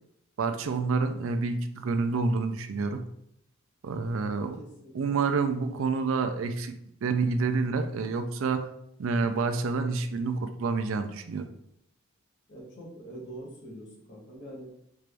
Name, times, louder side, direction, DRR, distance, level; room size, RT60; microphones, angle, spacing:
voice 1, 0.4-3.0 3.8-4.6 4.9-6.7 7.0-8.7 9.0-11.5, right 4 dB, 70° right, 8 dB, 0.4 m, -28 dB
voice 2, 4.2-5.2 5.8-5.9 12.5-14.7, right 1 dB, 55° left, -2 dB, 1.3 m, -45 dB
4.6 x 2.5 x 3.3 m, 0.75 s
head